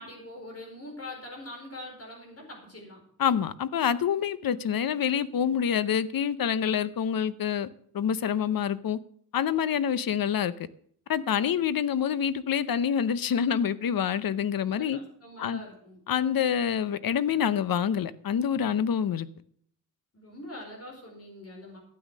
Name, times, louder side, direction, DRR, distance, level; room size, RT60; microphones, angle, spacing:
voice 1, 0.0-3.0 14.5-16.0 20.1-21.8, left 1 dB, 45° left, 1 dB, 4.7 m, -43 dB
voice 2, 3.2-7.7 7.9-9.0 9.3-10.5 11.1-15.0 15.4-15.6 16.1-19.3, left 8 dB, 80° left, 16 dB, 0.8 m, -27 dB
12.5 x 8.6 x 6.3 m, 0.62 s
wide cardioid pair, 145°, 34 cm